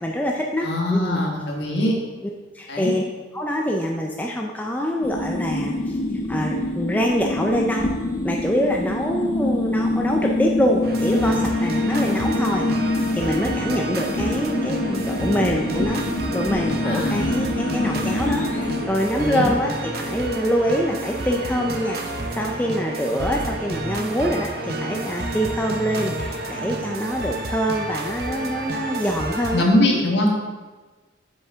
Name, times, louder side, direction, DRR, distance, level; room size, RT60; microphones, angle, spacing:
voice 1, 0.0-1.3 2.2-2.3 2.5-3.0 3.3-6.0 6.3-7.9 8.2-16.0 16.3-29.7, equal, 10° left, 0 dB, 0.4 m, -25 dB
voice 2, 0.6-1.9 2.7-2.9 16.8-17.2 19.1-19.5 29.5-30.3, left 1 dB, 60° left, -1 dB, 1.5 m, -21 dB
sound 1, 5.0-18.8, left 2 dB, 40° left, 0.7 m, -25 dB
sound 2, 10.8-29.6, right 1 dB, 50° right, 0.7 m, -30 dB
7.5 x 6.6 x 3.5 m, 1.3 s
head